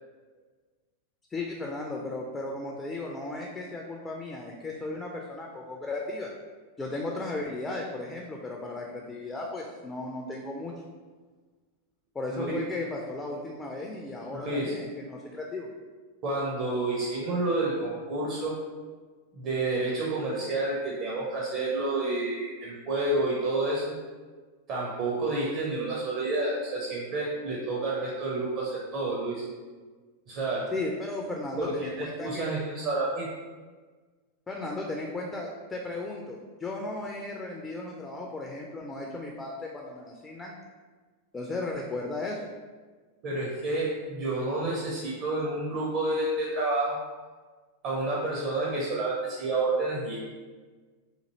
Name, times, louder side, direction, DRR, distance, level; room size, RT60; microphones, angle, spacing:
voice 1, 1.3-6.3 6.8-10.7 12.1-15.7 30.7-32.5 34.5-40.6 41.3-42.4, left 2 dB, 15° left, -1 dB, 0.3 m, -35 dB
voice 2, 12.3-12.6 14.3-14.7 16.2-18.6 19.3-23.9 24.7-29.4 30.3-30.7 31.6-33.3 43.2-47.0 47.8-50.2, right 2 dB, 40° right, -5 dB, 0.5 m, -29 dB
2.9 x 2.5 x 2.7 m, 1.4 s
figure-of-eight pair, 90°, 0 cm